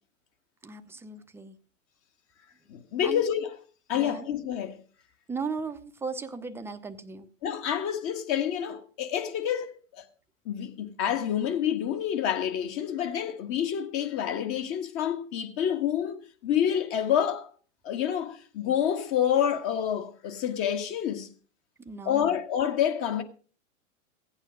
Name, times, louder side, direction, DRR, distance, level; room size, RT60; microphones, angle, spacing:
voice 1, 0.6-1.6 3.0-3.2 3.9-4.3 5.3-7.3 21.8-22.3, right 4 dB, 5° right, 0.8 m, -36 dB
voice 2, 2.7-3.6 3.9-4.8 7.4-10.0 10.4-17.5 17.8-21.3 22.0-23.2, left 9 dB, 35° left, 1.5 m, -28 dB
16.0 x 9.0 x 5.1 m
hypercardioid pair, 120°, 40 cm